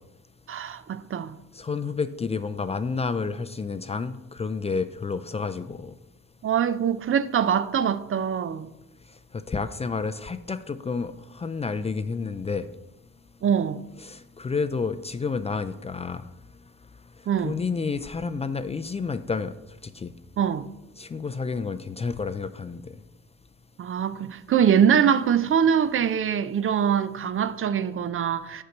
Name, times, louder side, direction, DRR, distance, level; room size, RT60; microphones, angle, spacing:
voice 1, 0.5-1.4 6.4-8.7 13.4-13.8 17.3-17.6 20.4-20.7 23.8-28.6, right 8 dB, 45° right, 0.5 m, -23 dB
voice 2, 1.5-5.9 9.3-12.7 14.0-16.2 17.4-19.5 19.8-20.1 21.0-23.0, left 4 dB, 20° left, 0.4 m, -30 dB
6.6 x 4.6 x 6.5 m
cardioid pair, 90°, 30 cm